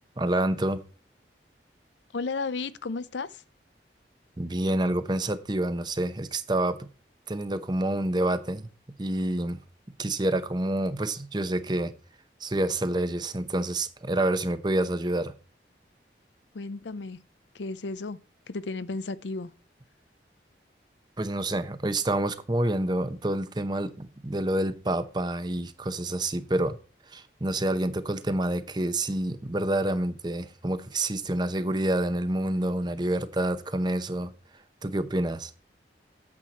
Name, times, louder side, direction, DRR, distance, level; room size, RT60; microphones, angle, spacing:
voice 1, 0.2-0.8 4.4-6.9 7.3-8.7 9.0-9.6 10.0-11.9 12.4-15.3 21.2-26.8 27.1-34.3 34.8-35.5, right 1 dB, 25° right, 0.7 m, -28 dB
voice 2, 2.1-3.4 16.5-17.2 17.5-18.2 18.5-19.5, left 3 dB, 90° left, 0.6 m, -33 dB
8.8 x 7.5 x 4.1 m
head